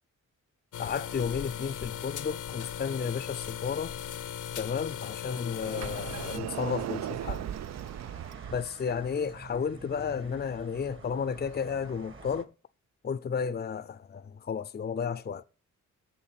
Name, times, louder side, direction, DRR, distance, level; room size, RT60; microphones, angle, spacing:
sound 1, 0.7-6.4, left 9 dB, 75° left, 0.8 m, -38 dB
voice 1, 0.8-4.0 4.6-7.5 8.5-12.5 13.0-15.4, left 6 dB, 30° left, 0.6 m, -33 dB
Sliding door, 5.6-8.6, right 11 dB, 60° right, 0.5 m, -37 dB
sound 2, 5.7-12.4, right 4 dB, 40° right, 1.4 m, -49 dB
7.1 x 7.0 x 7.5 m
cardioid pair, 70°, 31 cm